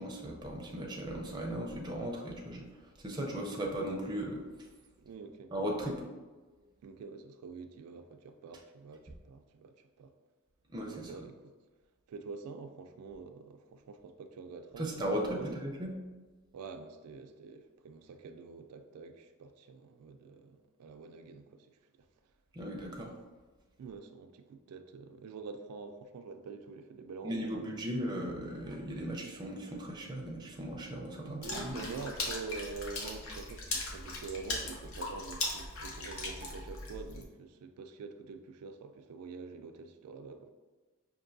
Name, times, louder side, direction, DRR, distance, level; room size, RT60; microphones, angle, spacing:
voice 1, 0.0-4.7 5.5-6.0 10.7-11.2 14.8-15.9 22.5-23.1 27.2-31.8, right 1 dB, 20° right, -1 dB, 0.5 m, -37 dB
voice 2, 5.0-5.5 6.8-10.1 10.9-11.5 12.1-15.6 16.5-22.3 23.8-28.0 31.2-40.5, right 4 dB, 90° right, 7 dB, 0.3 m, -46 dB
Water / Splash splatter, 31.4-37.2, left 2 dB, 65° left, 0.7 m, -39 dB
5.2 x 2.6 x 2.6 m, 1.3 s
head